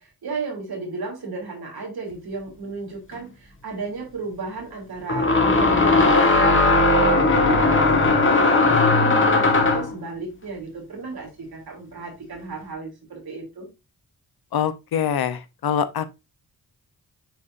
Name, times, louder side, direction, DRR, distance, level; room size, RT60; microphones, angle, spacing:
voice 1, 0.0-13.7, right 3 dB, 85° right, 2.9 m, -34 dB
sound 1, 3.1-3.2 5.1-9.9, left 3 dB, 35° left, 1.5 m, -17 dB
voice 2, 14.5-16.0, left 8 dB, 85° left, 0.7 m, -24 dB
9.2 x 4.0 x 2.5 m
cardioid pair, 65°, 36 cm